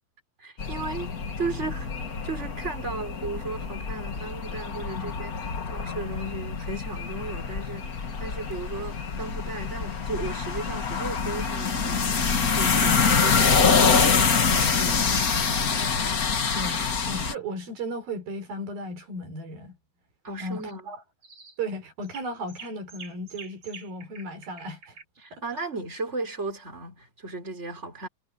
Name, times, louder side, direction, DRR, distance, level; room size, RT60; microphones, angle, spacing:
voice 1, 0.4-1.9 2.2-5.3 5.7-15.2 20.2-20.8 25.2-28.1, right 3 dB, 15° right, 5.7 m, -35 dB
sound 1, 0.6-17.3, left 5 dB, 45° left, 1.1 m, -25 dB
voice 2, 12.8-13.3 16.5-19.8 20.4-21.0 21.6-25.0 25.3-25.4, right 1 dB, 75° right, 6.5 m, -35 dB
sound 2, 14.5-14.8 15.2-17.0 20.5-20.7 21.2-21.6 22.0-25.0, right 4 dB, 35° right, 5.9 m, -47 dB
omnidirectional pair, 4.2 m